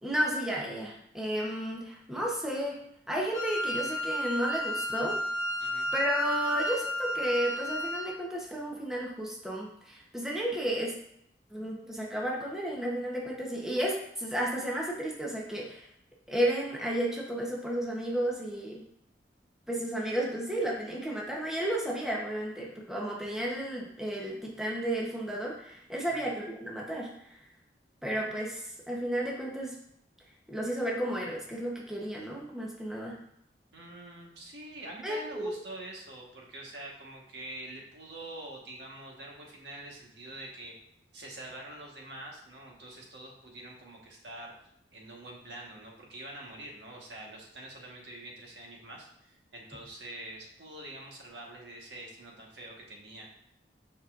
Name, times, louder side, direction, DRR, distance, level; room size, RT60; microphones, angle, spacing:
voice 1, 0.0-2.8 3.1-5.2 5.9-10.9 11.5-15.9 16.3-18.8 19.7-27.4 28.0-29.7 30.5-33.2 35.0-35.5, right 1 dB, 5° right, -4 dB, 0.9 m, -32 dB
Wind instrument woodwind instrument, 3.3-8.2, equal, 40° left, 0.9 m, -32 dB
voice 2, 33.7-40.7 41.1-44.5 44.9-53.3, right 1 dB, 80° right, -2 dB, 1.4 m, -45 dB
7.0 x 5.4 x 2.5 m, 0.73 s
head